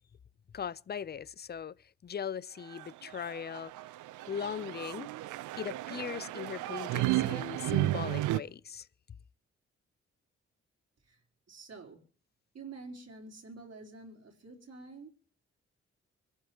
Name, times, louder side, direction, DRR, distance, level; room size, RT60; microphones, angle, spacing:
voice 1, 0.5-3.7 4.3-5.1 5.6-8.9, left 7 dB, 35° left, 0.5 m, -39 dB
sound 1, 2.7-8.4, right 16 dB, 75° right, 0.5 m, -33 dB
voice 2, 11.5-12.0 12.5-15.1, right 3 dB, 55° right, 3.7 m, -48 dB
25.0 x 12.0 x 3.0 m
hypercardioid pair, 40°, 30 cm